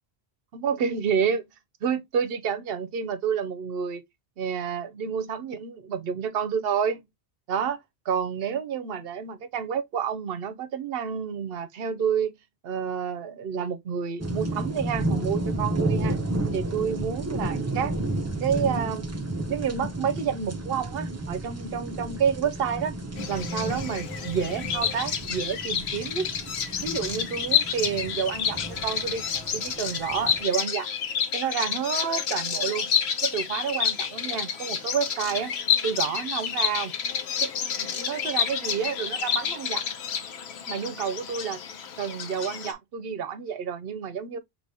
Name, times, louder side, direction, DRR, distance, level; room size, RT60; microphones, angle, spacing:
voice 1, 0.5-1.5 1.8-4.0 4.4-7.0 7.5-7.8 8.1-12.4 12.6-16.2 16.5-17.9 18.4-19.2 19.5-22.9 23.3-26.3 26.8-29.2 29.5-30.9 31.3-32.9 33.2-35.5 35.8-36.9 37.4-39.8 40.7-41.6 42.0-44.4, right 7 dB, 70° right, 0.8 m, -29 dB
sound 1, 14.2-30.4, right 2 dB, 25° right, 0.4 m, -32 dB
Bird vocalization bird call bird song, 23.2-42.7, left 7 dB, 85° left, 1.0 m, -29 dB
4.8 x 3.1 x 2.6 m
omnidirectional pair, 1.1 m